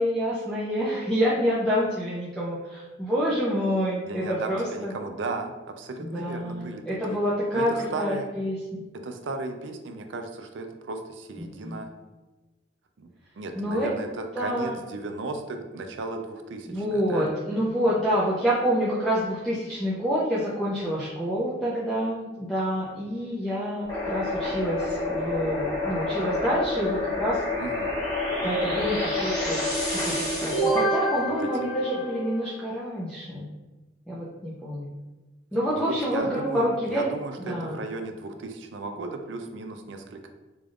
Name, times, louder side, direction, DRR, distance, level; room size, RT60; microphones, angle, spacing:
voice 1, 0.0-4.9 6.0-8.8 11.4-11.8 13.5-13.9 14.3-14.7 16.7-27.4 28.4-29.6 30.0-33.5 34.1-34.9 35.5-37.0 37.4-37.8, equal, 5° left, -9 dB, 0.6 m, -27 dB
voice 2, 4.1-6.8 7.1-7.2 7.5-8.3 9.0-11.9 13.0-13.1 13.4-17.3 27.6-27.9 31.2-31.3 35.7-40.3, right 3 dB, 80° right, 5 dB, 0.5 m, -35 dB
sound 1, 23.9-32.5, left 1 dB, 20° left, 1.0 m, -28 dB
3.9 x 3.4 x 2.4 m, 1.2 s
head